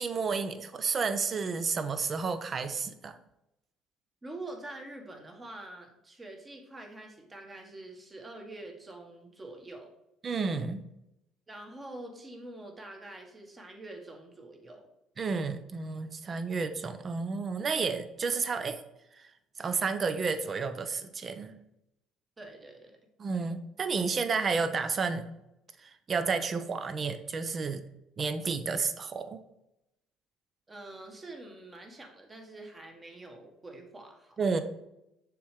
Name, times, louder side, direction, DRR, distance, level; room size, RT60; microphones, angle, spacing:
voice 1, 0.0-3.2 10.2-10.8 15.2-18.8 19.1-19.3 19.6-21.5 23.2-25.3 25.8-27.8 28.2-29.4 34.4-34.6, right 4 dB, 40° right, 9 dB, 0.6 m, -31 dB
voice 2, 4.2-9.9 11.5-14.9 22.4-23.0 30.7-34.3, right 2 dB, 20° right, 2 dB, 1.4 m, -45 dB
6.8 x 3.2 x 5.0 m, 0.86 s
cardioid pair, 100°, 0 cm